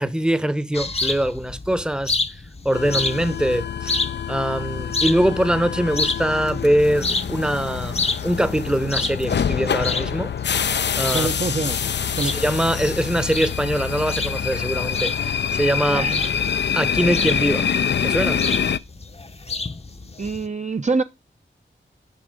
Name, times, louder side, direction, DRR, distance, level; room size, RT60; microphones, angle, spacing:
voice 1, 0.0-2.2 2.6-4.0 4.3-10.3 11.0-11.3 12.3-16.1 16.7-17.7 18.0-18.4, right 1 dB, 5° right, 0.8 m, -23 dB
sound 1, 0.7-20.5, left 3 dB, 30° left, 0.7 m, -30 dB
sound 2, 2.7-18.8, left 7 dB, 60° left, 0.4 m, -26 dB
voice 2, 11.1-11.8 12.2-12.3 15.9-16.3 20.2-21.0, right 3 dB, 35° right, 0.6 m, -25 dB
Bell, 12.2-16.7, right 4 dB, 80° right, 3.9 m, -50 dB
7.6 x 5.9 x 5.0 m
wide cardioid pair, 50°, 20 cm